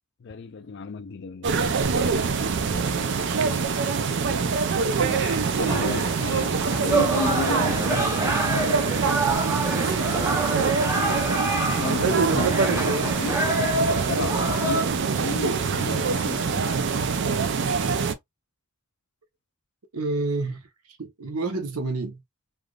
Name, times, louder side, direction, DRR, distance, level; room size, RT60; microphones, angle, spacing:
voice 1, 0.2-1.7 5.0-8.4 11.7-13.5 14.1-16.8, left 4 dB, 50° left, 0.4 m, -34 dB
sound 1, 1.4-18.1, right 5 dB, 55° right, 0.4 m, -24 dB
voice 2, 2.6-3.6 9.0-10.6 17.6-18.0 19.9-22.2, right 3 dB, 90° right, 0.9 m, -32 dB
sound 2, 5.7-14.8, right 2 dB, 10° right, 0.6 m, -27 dB
3.3 x 2.4 x 2.3 m
head